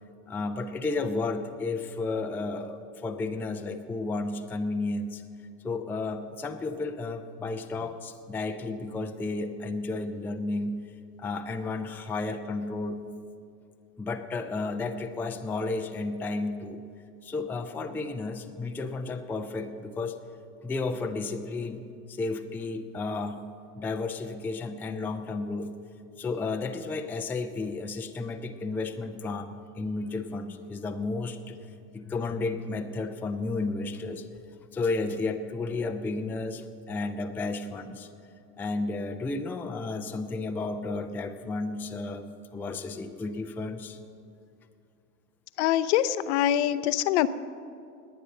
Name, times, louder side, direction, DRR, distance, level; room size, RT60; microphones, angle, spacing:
voice 1, 0.3-5.2 5.6-10.8 11.2-13.0 14.0-16.8 17.2-20.2 20.6-23.4 23.8-25.7 26.2-31.6 31.9-34.2 34.7-38.1 38.6-42.3 42.5-44.0, left 3 dB, 5° left, 6 dB, 0.4 m, -32 dB
voice 2, 45.6-47.3, left 12 dB, 50° left, 14 dB, 0.7 m, -24 dB
20.5 x 9.0 x 6.4 m, 2.5 s
figure-of-eight pair, 80°, 45 cm